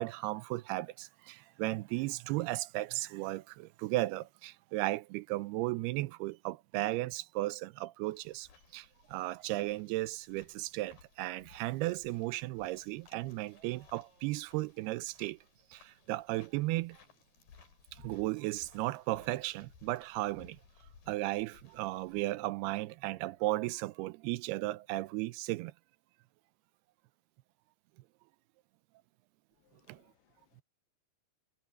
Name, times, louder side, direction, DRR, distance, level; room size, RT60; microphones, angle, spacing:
voice 1, 0.0-15.4 15.7-17.0 17.9-20.6 21.1-25.7 29.9-30.0, right 18 dB, 85° right, 2.5 m, -35 dB
sound 1, 8.0-22.2, left 6 dB, 60° left, 5.0 m, -62 dB
sound 2, 10.5-23.8, right 3 dB, 45° right, 9.4 m, -72 dB
voice 2, 29.6-30.6, left 15 dB, 80° left, 2.8 m, -71 dB
omnidirectional pair, 4.6 m